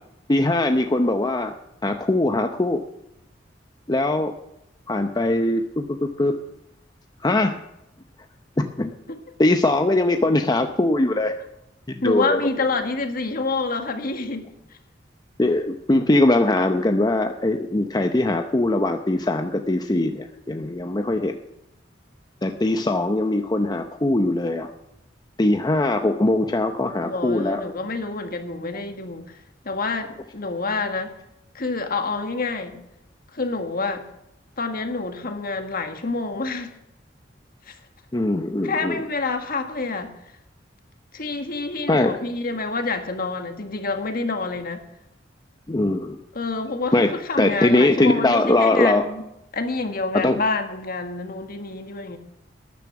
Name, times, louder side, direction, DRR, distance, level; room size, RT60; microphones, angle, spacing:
voice 1, 0.3-1.5 1.8-2.8 3.9-4.3 4.9-6.4 7.2-7.6 8.6-8.9 9.4-11.3 11.9-12.4 15.4-21.4 22.4-24.7 25.4-27.6 38.1-39.0 41.9-42.2 45.7-46.2 46.9-49.1 50.2-50.4, left 2 dB, 20° left, 0.7 m, -21 dB
voice 2, 12.0-14.5 27.0-29.4 29.6-31.1 31.5-32.8 33.3-34.0 34.6-36.7 37.7-37.8 38.6-40.1 41.1-44.8 46.3-49.2 49.5-52.2, left 3 dB, 50° left, 1.7 m, -27 dB
12.5 x 10.5 x 5.9 m
head